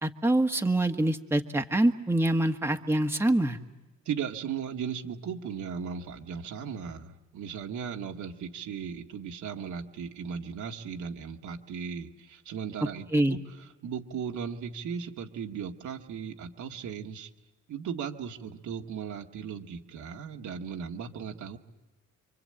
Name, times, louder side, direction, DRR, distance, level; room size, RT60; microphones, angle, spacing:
voice 1, 0.0-3.6 13.1-13.4, right 1 dB, 10° right, 4 dB, 1.5 m, -25 dB
voice 2, 4.1-17.3 17.7-21.6, right 7 dB, 75° right, 3 dB, 2.0 m, -37 dB
27.5 x 24.0 x 8.8 m, 1.1 s
cardioid pair, 90°, 30 cm